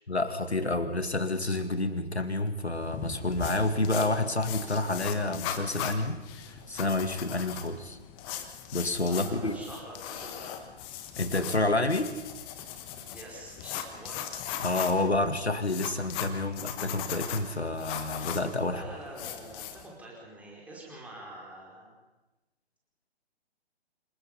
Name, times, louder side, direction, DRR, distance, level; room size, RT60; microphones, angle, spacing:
voice 1, 0.1-8.0 8.7-9.6 11.2-12.1 14.6-18.8, left 2 dB, 85° left, 9 dB, 2.2 m, -29 dB
sound 1, 2.7-19.9, left 9 dB, 15° left, 1.2 m, -39 dB
voice 2, 9.1-10.6 13.0-14.3 18.7-21.9, right 1 dB, 5° right, -3 dB, 4.9 m, -45 dB
26.5 x 20.5 x 5.6 m, 1.1 s
figure-of-eight pair, 135°, 32 cm